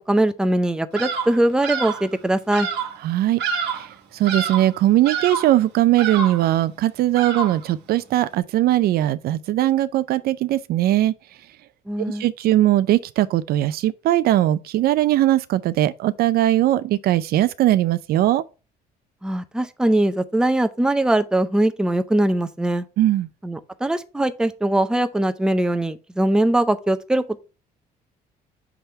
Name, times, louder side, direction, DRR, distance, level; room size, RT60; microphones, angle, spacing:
voice 1, 0.0-2.7 11.9-12.2 19.2-22.8 23.4-27.4, right 1 dB, 5° right, 0.6 m, -21 dB
Bird vocalization bird call bird song, 1.0-1.4 1.6-2.1 2.5-3.0 3.4-3.9 4.2-4.7 5.1-5.6 6.0-6.5 7.1-7.7, right 6 dB, 80° right, 1.2 m, -27 dB
voice 2, 3.0-3.4 3.7-11.1 12.2-18.4 23.0-23.3, right 14 dB, 65° right, 0.4 m, -20 dB
6.0 x 3.4 x 5.4 m
cardioid pair, 110°, 17 cm